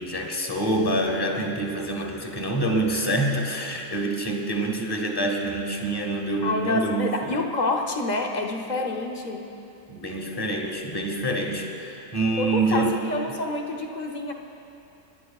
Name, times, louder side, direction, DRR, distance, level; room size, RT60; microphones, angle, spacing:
voice 1, 0.0-7.1 9.9-13.1, right 2 dB, 20° left, 2 dB, 0.8 m, -26 dB
voice 2, 6.4-9.5 12.4-14.3, left 2 dB, 50° left, 2 dB, 0.5 m, -27 dB
24.0 x 11.0 x 2.4 m, 2.8 s
omnidirectional pair, 1.7 m